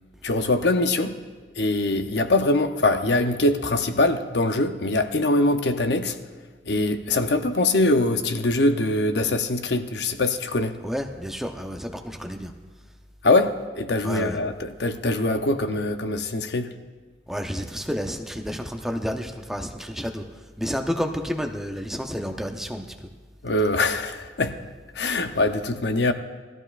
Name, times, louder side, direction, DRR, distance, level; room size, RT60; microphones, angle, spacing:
voice 1, 0.2-1.1 1.6-6.2 6.6-10.8 13.2-16.7 23.4-24.5 24.9-26.1, left 2 dB, 70° left, 8 dB, 0.7 m, -23 dB
voice 2, 10.8-12.5 14.0-14.4 17.3-20.2 20.6-22.9, equal, ahead, 4 dB, 0.7 m, -30 dB
18.5 x 13.5 x 2.5 m, 1.3 s
head